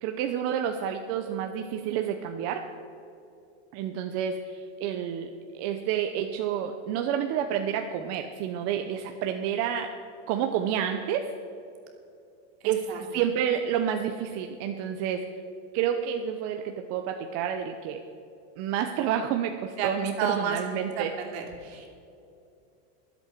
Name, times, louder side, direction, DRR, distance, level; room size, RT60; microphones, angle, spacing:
voice 1, 0.0-2.6 3.7-9.9 10.3-11.3 12.6-15.3 15.7-18.0 18.6-21.1, right 9 dB, 45° right, 5 dB, 0.8 m, -29 dB
voice 2, 12.6-13.0 19.8-19.9 20.2-20.6 21.0-21.9, right 7 dB, 65° right, 1 dB, 3.0 m, -31 dB
23.0 x 8.0 x 4.6 m, 2.6 s
supercardioid pair, 145°, 34 cm